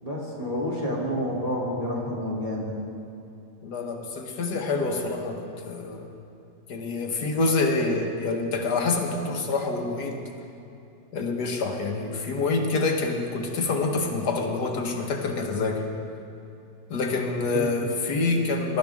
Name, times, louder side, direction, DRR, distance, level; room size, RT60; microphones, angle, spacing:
voice 1, 0.0-2.7 17.5-17.6, equal, 20° right, -6 dB, 3.0 m, -29 dB
voice 2, 3.6-6.1 6.7-10.2 11.1-15.8 16.9-18.8, left 3 dB, 75° left, 2 dB, 1.9 m, -26 dB
22.0 x 12.0 x 3.6 m, 2.7 s
omnidirectional pair, 1.8 m